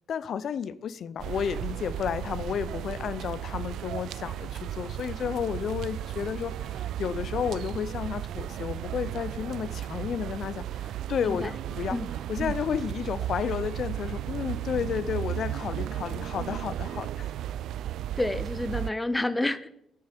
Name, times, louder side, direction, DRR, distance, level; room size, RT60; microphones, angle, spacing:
voice 1, 0.1-12.0 12.3-17.3, left 8 dB, 60° left, 18 dB, 0.5 m, -32 dB
sound 1, 1.2-18.9, right 12 dB, 80° right, 0.3 m, -35 dB
sound 2, 4.6-12.3, right 4 dB, 50° right, 1.8 m, -51 dB
voice 2, 11.2-11.5 11.9-12.1 12.4-12.5 18.2-19.7, left 2 dB, 15° left, 15 dB, 0.7 m, -29 dB
9.9 x 9.3 x 5.2 m, 0.77 s
cardioid pair, 90°, 0 cm